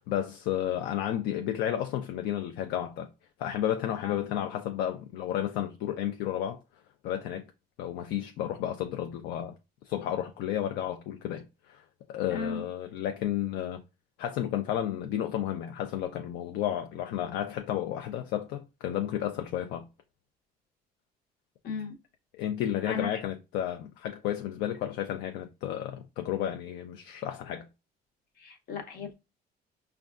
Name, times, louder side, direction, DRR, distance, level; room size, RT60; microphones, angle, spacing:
voice 1, 0.0-3.1 3.4-6.6 7.0-7.5 7.8-9.5 9.9-13.8 14.2-19.8 22.3-27.7, left 11 dB, 85° left, 0.4 m, -32 dB
voice 2, 12.3-12.7 21.6-22.0 22.9-23.2 28.4-29.1, left 5 dB, 65° left, 0.8 m, -36 dB
5.1 x 2.3 x 2.4 m
cardioid pair, 110°, 17 cm